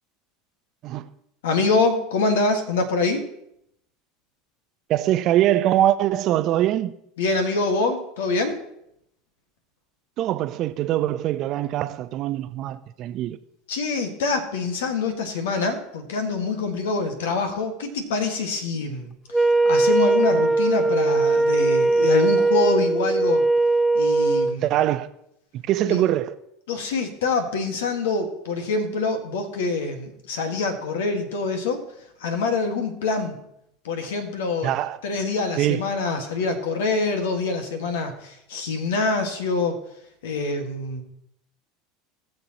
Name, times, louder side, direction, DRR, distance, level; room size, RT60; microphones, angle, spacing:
voice 1, 1.4-3.2 7.2-8.6 13.7-23.4 23.9-24.6 25.9-26.0 26.7-31.8 32.2-33.4 33.8-34.7 35.0-39.8 40.2-41.0, left 3 dB, 80° left, 1.7 m, -25 dB
voice 2, 4.9-6.9 10.2-13.4 24.6-25.1 25.7-26.3 34.6-35.0 35.6-35.8, right 13 dB, 50° right, 0.7 m, -22 dB
Wind instrument woodwind instrument, 19.3-24.6, right 2 dB, ahead, 0.9 m, -19 dB
19.5 x 6.7 x 2.9 m
hypercardioid pair, 85°, 0 cm